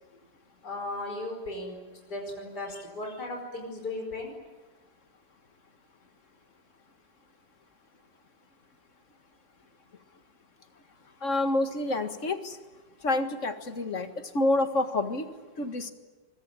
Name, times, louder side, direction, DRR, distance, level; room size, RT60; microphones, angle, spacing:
voice 1, 0.6-1.8 2.1-4.3, left 2 dB, 60° left, 2 dB, 5.6 m, -36 dB
voice 2, 11.2-12.6 13.0-15.9, left 2 dB, 45° left, 8 dB, 2.1 m, -28 dB
25.0 x 22.5 x 9.1 m, 1.3 s
omnidirectional pair, 2.0 m